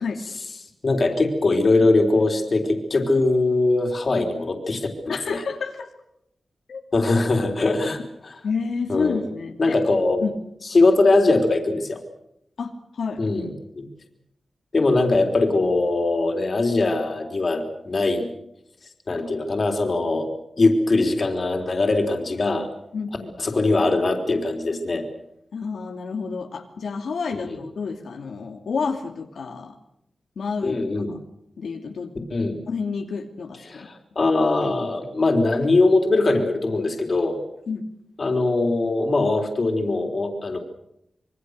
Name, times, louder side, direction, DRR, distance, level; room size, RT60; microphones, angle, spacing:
voice 1, 0.8-5.5 6.9-8.4 8.9-9.2 9.6-10.2 10.7-12.0 13.2-13.8 14.7-18.3 19.1-20.3 20.6-22.7 23.4-25.1 27.4-27.6 30.6-31.2 32.3-32.6 33.7-37.4 38.2-40.6, left 2 dB, 40° left, 4 dB, 3.8 m, -21 dB
voice 2, 5.1-5.9 6.7-6.8 8.4-9.8 10.2-10.4 12.6-13.2 22.9-23.3 25.5-29.8 30.4-30.8 31.1-31.2 31.6-32.1 32.7-33.9 37.7-37.9, left 5 dB, 90° left, 2 dB, 2.7 m, -29 dB
26.0 x 23.5 x 6.7 m, 0.79 s
wide cardioid pair, 140°, 0 cm